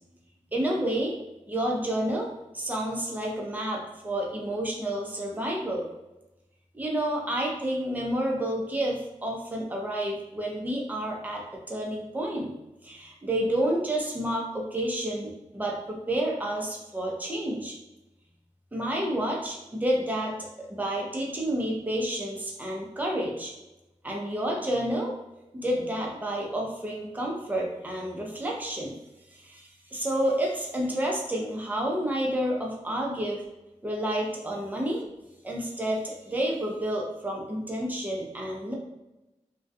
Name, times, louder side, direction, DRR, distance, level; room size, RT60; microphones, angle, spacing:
voice 1, 0.5-1.1 1.5-2.3 2.5-5.9 6.7-12.5 12.8-17.7 18.7-23.5 24.0-25.1 25.5-29.0 29.4-29.6 29.9-33.4 33.8-35.0 35.4-38.7, right 1 dB, 15° right, -1 dB, 0.6 m, -30 dB
2.2 x 2.2 x 2.6 m, 0.95 s
wide cardioid pair, 70°, 12 cm